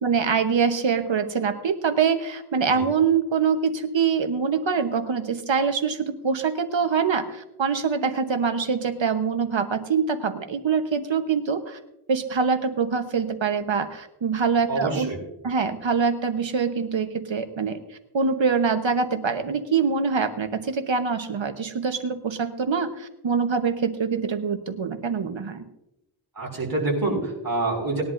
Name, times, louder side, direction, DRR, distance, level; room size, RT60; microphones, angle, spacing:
voice 1, 0.0-11.8 12.1-15.1 15.4-17.8 18.1-25.6, right 5 dB, 65° right, 7 dB, 1.1 m, -24 dB
voice 2, 14.7-15.2 26.3-28.0, right 2 dB, 45° right, -2 dB, 5.0 m, -26 dB
19.5 x 11.0 x 2.6 m, 0.86 s
wide cardioid pair, 115°, 50 cm